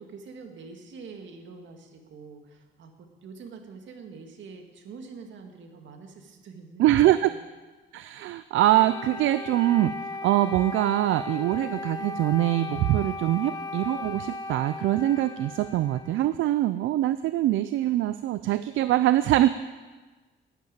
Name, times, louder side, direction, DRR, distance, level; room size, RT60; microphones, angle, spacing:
voice 1, 0.0-7.4 13.3-13.5, right 4 dB, 70° right, 4 dB, 2.1 m, -45 dB
voice 2, 6.8-7.3 7.9-19.5, right 14 dB, 85° right, 13 dB, 0.5 m, -23 dB
Wind instrument woodwind instrument, 8.7-16.4, left 3 dB, 20° left, 0.8 m, -37 dB
11.0 x 9.2 x 8.9 m, 1.3 s
cardioid pair, 100°, 20 cm